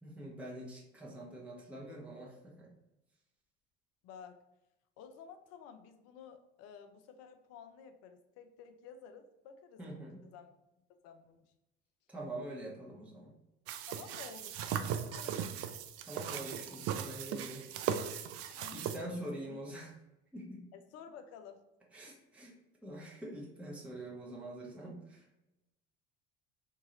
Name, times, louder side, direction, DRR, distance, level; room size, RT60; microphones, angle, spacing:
voice 1, 0.0-2.7 9.8-10.3 12.1-13.3 16.0-17.7 18.7-20.0 20.3-20.7 21.9-22.5 22.8-25.3, right 1 dB, 5° right, -4 dB, 1.2 m, -45 dB
voice 2, 4.0-4.4 5.0-10.1 10.3-10.5 10.9-11.5 13.9-15.5 18.5-19.6 20.7-21.6, left 7 dB, 60° left, 8 dB, 0.6 m, -53 dB
sound 1, 13.7-19.0, right 9 dB, 55° right, 0.4 m, -38 dB
2.9 x 2.8 x 3.8 m, 0.92 s
hypercardioid pair, 75°, 29 cm